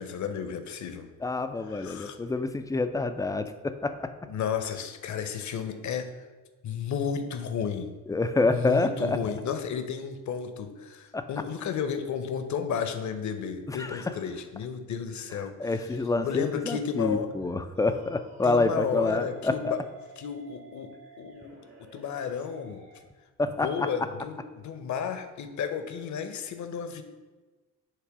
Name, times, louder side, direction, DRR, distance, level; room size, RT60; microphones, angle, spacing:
voice 1, 0.0-1.1 1.7-2.2 4.3-6.1 6.6-7.9 8.5-15.5 16.2-17.3 18.4-19.8 20.2-21.6 21.9-22.8 23.6-27.0, left 7 dB, 45° left, 9 dB, 0.8 m, -33 dB
voice 2, 1.2-4.1 8.1-9.2 11.1-11.3 13.7-14.1 15.6-19.7 23.4-23.9, left 3 dB, 10° left, 8 dB, 0.4 m, -27 dB
sound 1, 17.7-23.0, right 3 dB, 65° right, 2.2 m, -52 dB
7.6 x 3.3 x 4.8 m, 1.3 s
figure-of-eight pair, 40°, 41 cm